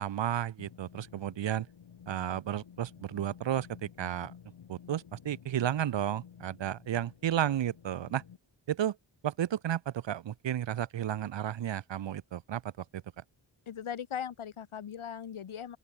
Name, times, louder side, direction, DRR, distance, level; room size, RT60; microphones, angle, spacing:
voice 1, 0.0-1.7 2.1-4.3 4.7-8.2 8.7-9.0 9.2-13.0, right 11 dB, 65° right, 0.6 m, -33 dB
sound 1, 0.6-8.4, left 8 dB, 70° left, 1.4 m, -53 dB
voice 2, 13.7-15.8, left 8 dB, 85° left, 1.5 m, -39 dB
open air
wide cardioid pair, 105°, 48 cm